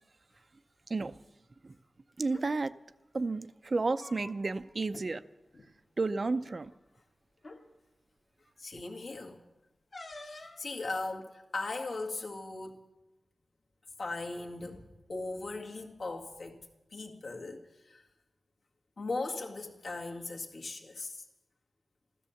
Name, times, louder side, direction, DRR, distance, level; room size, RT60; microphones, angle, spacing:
voice 1, 2.2-2.7 3.1-5.2 6.0-6.7, right 3 dB, 40° right, 0.5 m, -31 dB
sound 1, 2.3-2.5 3.7-4.6 4.9-5.1 5.5-5.7 6.7-6.8 7.4-7.6 9.9-10.6, left 2 dB, 45° left, 1.7 m, -48 dB
voice 2, 8.6-9.4 10.2-12.8 14.0-16.6 16.9-18.1 19.0-21.3, left 3 dB, 70° left, 2.0 m, -38 dB
14.5 x 13.0 x 7.1 m
wide cardioid pair, 130°, 0 cm